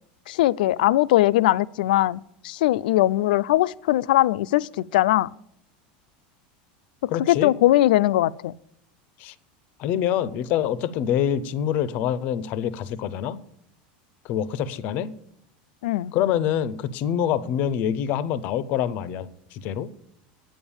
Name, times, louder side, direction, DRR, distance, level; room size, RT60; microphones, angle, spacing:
voice 1, 0.3-5.3 7.0-8.5 15.8-16.1, left 15 dB, 85° left, 0.4 m, -20 dB
voice 2, 7.1-7.5 9.2-9.3 9.8-13.4 14.2-15.1 16.1-19.9, left 9 dB, 35° left, 0.5 m, -26 dB
8.9 x 7.1 x 8.7 m
supercardioid pair, 180°, 5 cm